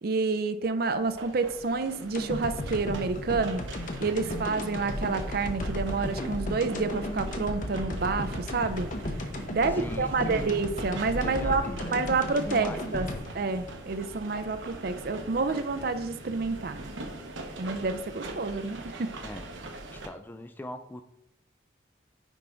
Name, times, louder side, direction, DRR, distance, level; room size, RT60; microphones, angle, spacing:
voice 1, 0.0-3.6 4.0-8.9 9.5-13.1 13.3-16.8 17.6-19.1, right 4 dB, 55° right, 11 dB, 0.5 m, -29 dB
sound 1, 0.8-20.1, right 2 dB, 80° right, 1.0 m, -43 dB
sound 2, 2.1-14.4 14.7-14.8, left 1 dB, 45° left, 0.8 m, -35 dB
voice 2, 9.7-10.5 11.2-12.1 12.4-13.2 19.2-19.5 19.9-21.0, left 1 dB, 10° left, 8 dB, 0.3 m, -41 dB
10.0 x 3.6 x 3.8 m, 0.80 s
head